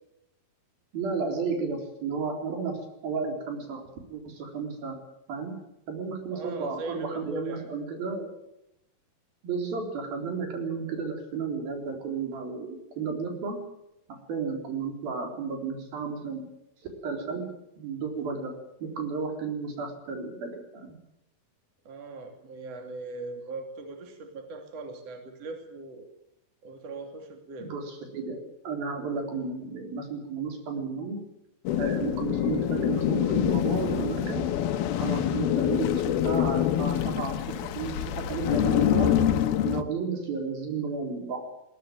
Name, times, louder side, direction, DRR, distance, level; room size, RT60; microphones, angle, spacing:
voice 1, 0.9-2.8 3.0-3.8 4.1-5.0 5.3-5.5 5.9-8.3 9.4-13.6 14.1-16.4 17.0-17.5 17.8-18.5 18.8-20.9 27.6-31.2 31.8-34.5 35.0-39.2 39.6-41.4, right 5 dB, 70° right, 3 dB, 5.6 m, -33 dB
voice 2, 6.3-7.7 21.9-26.1 26.6-27.7, right 3 dB, 45° right, 4 dB, 3.7 m, -40 dB
sound 1, 31.7-39.8, left 11 dB, 80° left, 3.0 m, -26 dB
21.0 x 16.5 x 9.4 m, 0.86 s
omnidirectional pair, 4.3 m